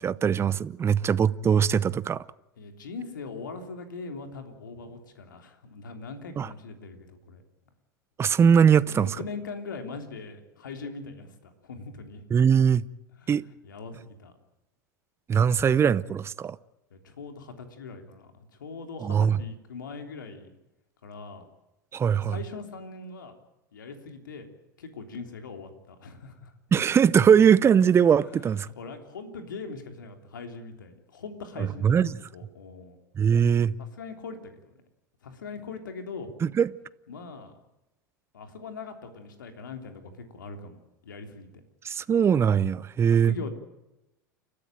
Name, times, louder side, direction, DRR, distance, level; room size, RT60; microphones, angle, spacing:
voice 1, 0.0-2.2 6.4-6.5 8.2-9.1 12.3-12.8 13.3-13.4 15.3-16.6 19.0-19.4 21.9-22.4 26.7-28.7 31.6-32.1 33.2-33.7 36.4-36.7 41.8-43.3, right 7 dB, 25° right, 0.7 m, -21 dB
voice 2, 2.6-7.4 8.8-12.2 13.2-14.3 16.9-18.3 18.6-20.5 21.0-21.5 22.1-23.4 23.7-24.5 24.8-26.5 28.2-33.0 33.8-34.7 35.2-36.3 37.1-37.5 38.3-41.5 43.1-43.5, left 4 dB, 80° left, 3.3 m, -41 dB
29.5 x 13.5 x 9.0 m
hypercardioid pair, 90°, 10 cm